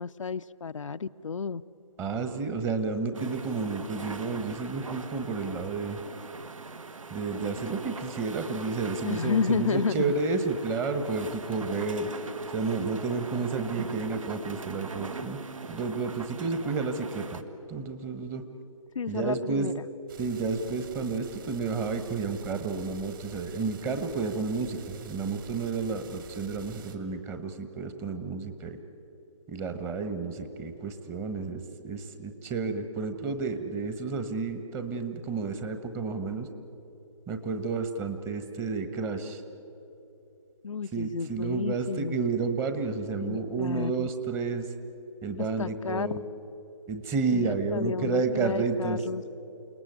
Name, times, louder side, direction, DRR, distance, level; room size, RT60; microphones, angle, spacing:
voice 1, 0.0-1.6 9.0-10.1 18.9-19.8 40.6-42.2 43.2-44.1 45.6-46.1 47.3-49.2, left 5 dB, 65° left, 10 dB, 0.6 m, -31 dB
voice 2, 2.0-6.0 7.1-12.1 12.5-15.4 15.7-17.4 17.7-18.4 19.1-19.7 20.2-28.8 29.5-36.5 37.3-39.4 40.9-44.7 45.2-46.2 46.9-49.0, right 4 dB, 15° right, 8 dB, 1.2 m, -31 dB
sound 1, 3.1-17.4, right 4 dB, 70° right, 1.7 m, -41 dB
sound 2, 20.1-27.0, right 8 dB, 40° right, 2.1 m, -48 dB
29.0 x 19.0 x 9.4 m, 2.9 s
figure-of-eight pair, 145°, 18 cm